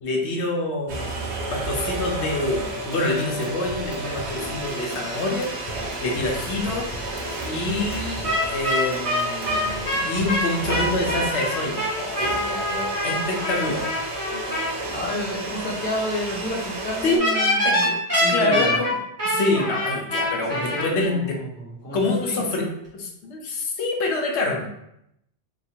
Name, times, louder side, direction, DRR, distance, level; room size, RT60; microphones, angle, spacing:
voice 1, 0.0-5.5 6.0-6.9 7.4-13.9 17.0-17.2 17.6-18.0 18.3-19.0 19.2-21.4 21.9-24.7, left 2 dB, 80° left, 0 dB, 0.9 m, -26 dB
sound 1, 0.9-17.2, right 2 dB, 80° right, 1.0 m, -32 dB
sound 2, 2.4-10.4, equal, 40° left, 0.6 m, -40 dB
sound 3, 8.2-14.7 17.2-20.8, left 1 dB, 15° right, 1.4 m, -25 dB
voice 2, 14.9-17.9 18.2-18.8 20.3-22.4, equal, 10° left, -6 dB, 1.0 m, -31 dB
3.0 x 2.2 x 4.3 m, 0.79 s
omnidirectional pair, 1.1 m